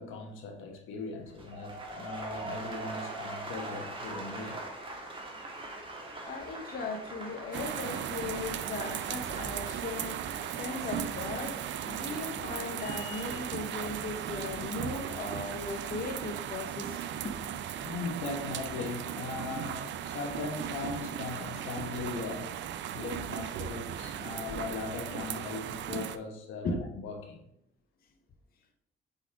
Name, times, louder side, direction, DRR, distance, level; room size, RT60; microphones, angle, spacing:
voice 1, 0.0-4.6 17.8-22.6 22.9-27.4, left 4 dB, 85° left, 3 dB, 1.2 m, -39 dB
sound 1, 1.2-17.3 17.6-18.0, right 2 dB, 25° right, 1.4 m, -44 dB
voice 2, 6.2-11.6 11.9-17.3 26.6-26.8, left 3 dB, 50° left, 3 dB, 0.7 m, -38 dB
sound 2, 7.5-26.2, right 9 dB, 65° right, 0.5 m, -37 dB
4.8 x 4.1 x 4.8 m, 0.76 s
cardioid pair, 90°, 20 cm